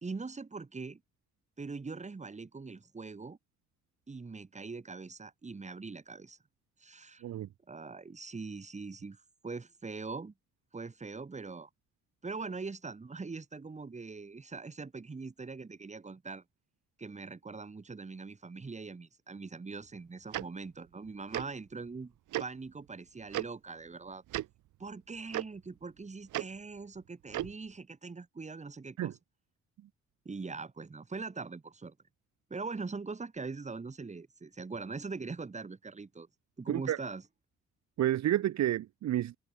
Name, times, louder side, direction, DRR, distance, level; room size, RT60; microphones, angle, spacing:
voice 1, 0.0-1.0 1.6-3.4 4.1-6.4 6.8-7.2 7.7-10.3 10.7-11.7 12.2-16.4 17.0-22.1 22.4-24.2 24.8-29.2 30.3-32.0 32.5-36.3 36.6-37.2, right 4 dB, 25° right, 2.1 m, -42 dB
Tick-tock, 20.3-20.4 21.3-21.5 22.3-22.5 23.3-23.4 24.3-24.5 25.3-25.4 26.3-26.4 27.3-27.5, right 15 dB, 85° right, 1.9 m, -33 dB
voice 2, 38.0-39.4, right 12 dB, 65° right, 1.0 m, -30 dB
cardioid pair, 90°, 30 cm